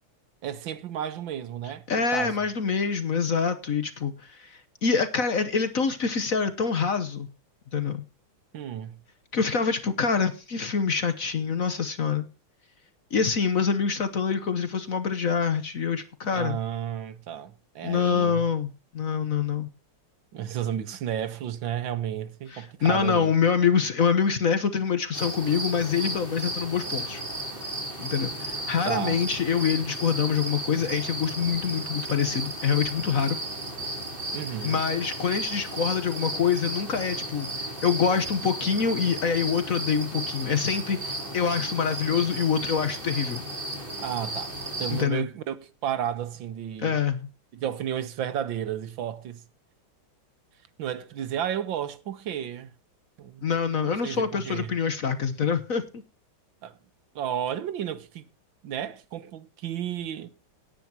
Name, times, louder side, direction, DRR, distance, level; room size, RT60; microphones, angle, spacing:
voice 1, 0.4-2.5 8.5-8.9 16.3-18.4 20.3-23.3 28.9-29.2 34.3-34.8 44.0-44.5 44.8-47.0 47.5-49.4 50.8-52.7 53.2-53.5 54.0-54.7 56.6-56.7 57.2-58.2 58.6-60.3, right 10 dB, 70° right, 1.7 m, -32 dB
voice 2, 1.9-7.3 7.7-8.0 9.3-12.3 13.1-16.6 17.8-19.7 22.5-27.2 28.0-33.4 34.6-37.5 37.8-43.4 44.9-45.3 46.8-47.3 53.4-55.8, left 6 dB, 50° left, 1.2 m, -25 dB
sound 1, 25.1-45.0, right 1 dB, 25° right, 3.8 m, -34 dB
18.0 x 9.6 x 2.9 m
omnidirectional pair, 2.3 m